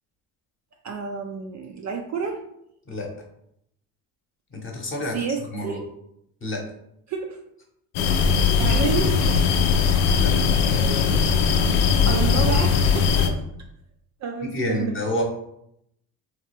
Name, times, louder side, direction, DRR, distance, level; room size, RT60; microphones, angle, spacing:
voice 1, 0.8-2.4 5.1-5.8 7.1-7.4 8.6-9.2 12.1-13.4 14.2-15.0, right 5 dB, 40° right, 2 dB, 0.5 m, -29 dB
voice 2, 4.5-5.1 5.5-5.8 6.4-6.6 10.2-10.3 14.5-15.2, left 1 dB, 25° left, 0 dB, 1.0 m, -28 dB
sound 1, 7.9-13.3, left 6 dB, 60° left, 0.6 m, -20 dB
3.2 x 2.4 x 3.2 m, 0.75 s
hypercardioid pair, 70°, 47 cm